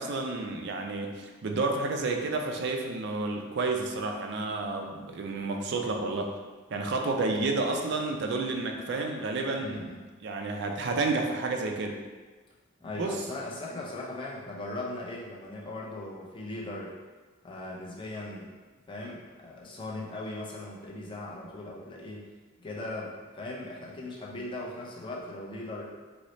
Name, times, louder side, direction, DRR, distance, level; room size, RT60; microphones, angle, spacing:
voice 1, 0.0-6.3 6.7-9.8 10.2-12.0 13.0-13.2, right 3 dB, 55° right, 3 dB, 0.4 m, -30 dB
voice 2, 9.6-10.0 12.8-17.0 17.4-18.5 18.9-22.3 22.6-25.9, left 2 dB, 25° left, -4 dB, 0.5 m, -39 dB
3.9 x 2.0 x 3.0 m, 1.4 s
head